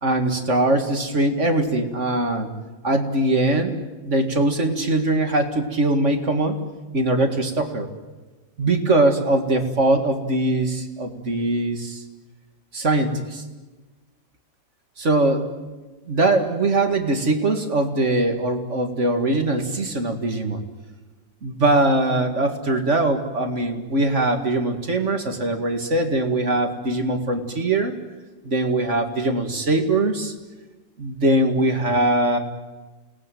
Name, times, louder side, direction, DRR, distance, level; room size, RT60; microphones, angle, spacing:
voice 1, 0.0-2.5 2.8-6.6 6.9-7.9 8.6-12.0 12.7-13.4 15.0-15.5 16.1-20.6 21.4-27.9 28.4-30.3 31.0-32.4, right 2 dB, 40° right, 6 dB, 2.4 m, -21 dB
29.0 x 19.5 x 9.3 m, 1.2 s
omnidirectional pair, 2.0 m